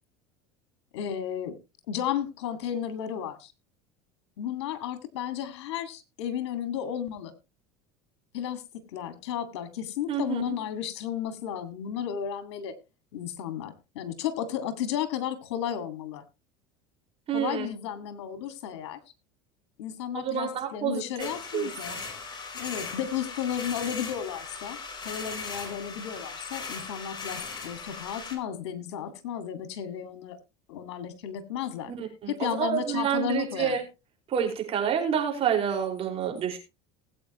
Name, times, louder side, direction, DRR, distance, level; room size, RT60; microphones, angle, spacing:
voice 1, 0.9-1.6 1.9-3.5 4.4-7.3 8.3-8.6 8.9-12.7 13.1-16.2 17.3-19.0 19.8-22.1 22.5-24.8 25.0-30.4 30.7-31.9 32.3-33.8, left 9 dB, 80° left, 10 dB, 2.0 m, -33 dB
voice 2, 10.1-10.5 17.3-17.7 20.1-21.3 21.5-22.0 31.9-33.8 34.3-36.6, right 8 dB, 45° right, 3 dB, 5.0 m, -28 dB
sound 1, 21.2-28.4, left 4 dB, 30° left, 4.0 m, -38 dB
19.5 x 8.6 x 3.0 m, 0.27 s
supercardioid pair, 95°, 14 cm